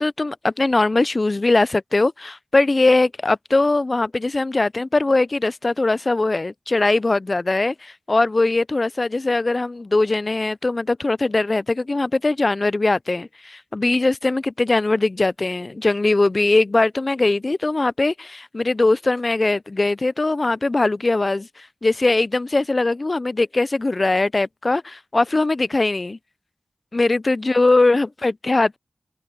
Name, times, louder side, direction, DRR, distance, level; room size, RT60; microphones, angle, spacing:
voice 1, 0.0-26.2 26.9-28.8, left 2 dB, 45° left, 0.3 m, -20 dB
open air
wide cardioid pair, 85°, 0 cm